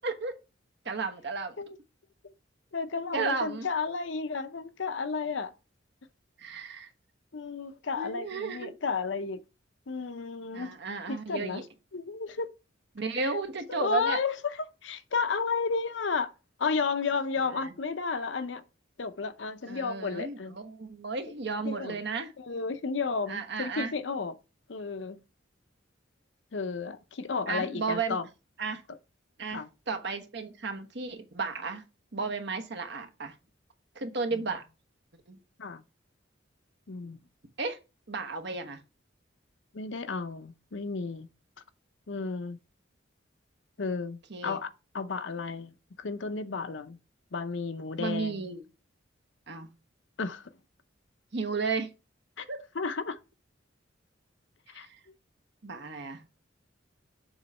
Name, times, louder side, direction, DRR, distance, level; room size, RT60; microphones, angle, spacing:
voice 1, 0.8-1.5 3.1-3.7 6.4-6.9 8.0-8.7 10.5-11.6 12.9-14.2 17.5-17.7 19.7-22.3 23.3-23.9 27.5-28.2 28.6-28.8 29.4-31.8 32.1-33.3 33.9-34.6 35.3-35.4 37.6-37.8 38.1-38.8 44.3-44.6 48.0-48.7 49.5-49.7 51.3-51.9 52.5-52.6 54.7-54.9 55.6-56.3, right 4 dB, 60° right, 1.1 m, -33 dB
voice 2, 2.7-5.5 7.3-9.4 9.9-10.8 11.1-11.6 11.9-12.5 13.2-13.3 13.7-16.3 16.6-18.6 19.0-20.6 21.3-21.4 21.6-22.0 22.4-24.3 24.7-25.2 26.5-28.3 29.5-29.7 35.6-35.8 36.9-37.2 39.7-41.3 42.1-42.6 43.8-45.7 46.0-47.0 47.3-48.5 50.2-50.5 52.4-52.5 52.7-53.2 54.7-54.9, left 4 dB, 70° left, 0.7 m, -33 dB
7.1 x 3.1 x 5.4 m
head